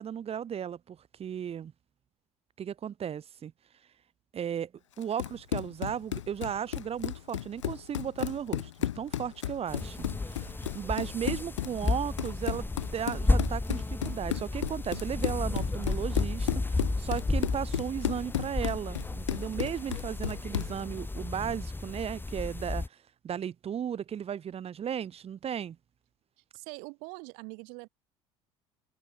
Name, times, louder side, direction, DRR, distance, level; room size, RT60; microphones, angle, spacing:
voice 1, 0.0-1.7 2.6-3.5 4.3-4.7 5.0-12.6 12.9-23.0 23.2-25.8, right 8 dB, 40° right, 4.1 m, -35 dB
Run, 5.0-20.8, left 12 dB, 90° left, 1.3 m, -34 dB
sound 1, 9.7-22.9, left 2 dB, 15° left, 3.8 m, -33 dB
voice 2, 26.5-27.9, right 33 dB, 70° right, 2.7 m, -43 dB
hypercardioid pair, 70°, 15 cm